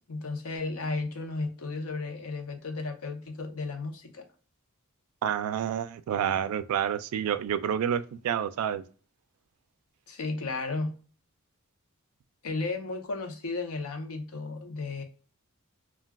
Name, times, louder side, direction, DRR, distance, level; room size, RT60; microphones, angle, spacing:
voice 1, 0.1-4.2 10.1-11.0 12.4-15.0, left 3 dB, 80° left, 0.7 m, -34 dB
voice 2, 5.2-8.8, right 9 dB, 75° right, 0.3 m, -29 dB
2.3 x 2.2 x 3.4 m
head